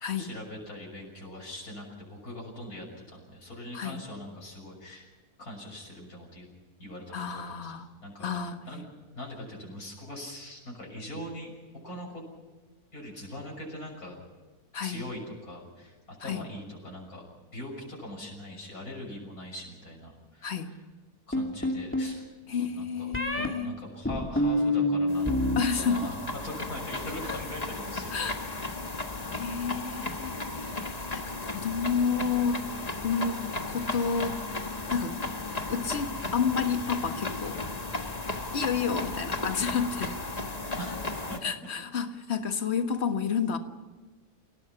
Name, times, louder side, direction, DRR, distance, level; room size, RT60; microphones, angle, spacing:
voice 1, 0.1-5.1 5.4-6.5 6.8-7.7 8.0-8.3 8.7-8.8 9.1-11.6 11.8-12.2 12.9-14.2 14.8-20.8 21.3-25.4 25.8-26.2 26.4-28.5 40.8-41.0 41.3-41.4, left 1 dB, 65° left, -2 dB, 6.9 m, -42 dB
voice 2, 7.1-7.9 8.2-8.6 14.7-15.1 16.2-16.4 20.4-20.7 22.5-23.7 25.6-26.1 27.3-27.4 28.1-28.4 28.9-29.0 29.3-32.7 33.0-33.4 33.7-34.4 34.9-35.2 35.7-37.6 38.5-40.3 41.4-43.6, left 6 dB, 45° left, 7 dB, 1.7 m, -30 dB
sound 1, 21.3-22.1 23.1-23.5 24.1-25.6 25.9-26.5, left 1 dB, 10° left, 2.2 m, -27 dB
sound 2, 25.1-41.4, left 2 dB, 25° left, 1.5 m, -35 dB
29.0 x 17.0 x 5.9 m, 1.3 s
omnidirectional pair, 1.6 m